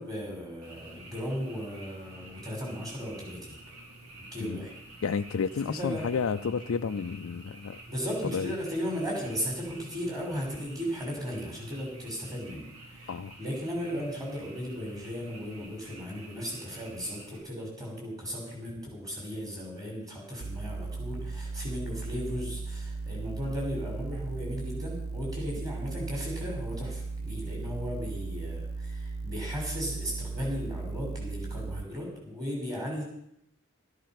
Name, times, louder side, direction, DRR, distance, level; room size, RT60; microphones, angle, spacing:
voice 1, 0.0-3.6 4.3-4.7 5.6-6.1 7.9-13.1 13.4-33.0, equal, 15° right, -1 dB, 5.7 m, -36 dB
Frog, 0.6-17.4, right 2 dB, 90° right, 5.0 m, -49 dB
voice 2, 5.0-7.8 8.3-8.5 13.1-13.4, left 5 dB, 65° left, 8 dB, 0.4 m, -31 dB
sound 1, 20.4-31.8, right 3 dB, 75° right, 0.7 m, -36 dB
13.5 x 13.0 x 6.0 m, 0.77 s
head